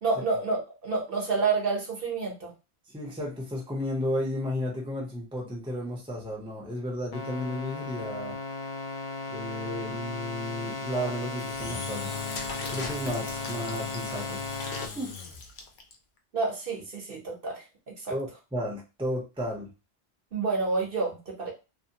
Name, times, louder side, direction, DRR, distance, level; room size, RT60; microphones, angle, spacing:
voice 1, 0.0-2.5 16.3-17.6 18.0-18.1 20.3-21.5, right 4 dB, 60° right, -1 dB, 1.0 m, -29 dB
voice 2, 2.9-8.4 9.3-12.1 12.7-14.4 14.9-15.2 18.1-19.7, equal, 5° right, -2 dB, 0.6 m, -33 dB
sound 1, 7.1-14.9, left 3 dB, 85° left, 0.9 m, -36 dB
Engine / Drill, 11.4-15.9, left 5 dB, 60° left, 0.7 m, -38 dB
2.7 x 2.0 x 2.7 m, 0.28 s
omnidirectional pair, 1.0 m